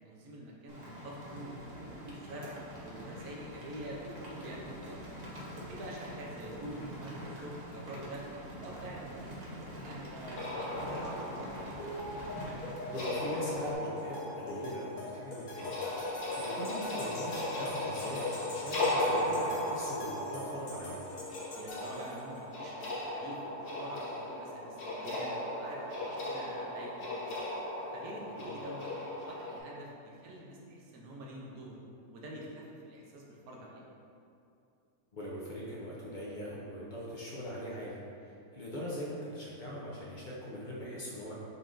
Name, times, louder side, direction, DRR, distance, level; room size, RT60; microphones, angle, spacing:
voice 1, 0.0-5.0 5.6-8.2 8.6-11.5 21.5-27.3 27.9-31.8 32.1-33.8, right 1 dB, 80° right, -2 dB, 1.2 m, -46 dB
Rain, 0.7-13.7, equal, 50° right, 0.5 m, -45 dB
sound 1, 10.4-29.6, left 1 dB, 90° left, 1.5 m, -37 dB
sound 2, 11.8-22.4, left 1 dB, 70° left, 1.3 m, -43 dB
voice 2, 12.9-15.7 16.0-21.0 28.4-28.5 35.1-41.3, equal, 50° left, -6 dB, 0.6 m, -41 dB
5.4 x 2.6 x 3.6 m, 2.6 s
omnidirectional pair, 1.6 m